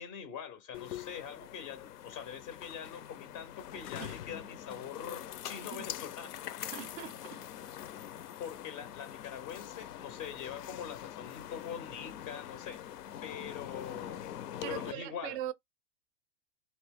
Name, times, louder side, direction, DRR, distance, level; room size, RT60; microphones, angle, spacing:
voice 1, 0.0-6.4 8.4-14.3 14.7-15.4, left 8 dB, 25° left, 0.4 m, -43 dB
sound 1, 0.7-14.9, left 11 dB, 85° left, 0.6 m, -44 dB
voice 2, 5.7-6.1 6.6-7.4 14.6-15.5, right 12 dB, 40° right, 0.4 m, -41 dB
3.0 x 2.6 x 3.4 m
hypercardioid pair, 130°, 45 cm